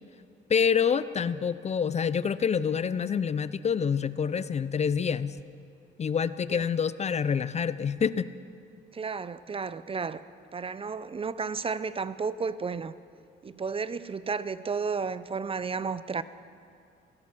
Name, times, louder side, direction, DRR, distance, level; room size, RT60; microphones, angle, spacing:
voice 1, 0.5-5.4 6.0-8.3, left 7 dB, 35° left, 16 dB, 0.5 m, -27 dB
voice 2, 8.9-10.2 10.5-12.9 13.4-16.2, right 5 dB, 30° right, 15 dB, 0.5 m, -32 dB
16.5 x 13.0 x 6.1 m, 2.4 s
cardioid pair, 90°, 20 cm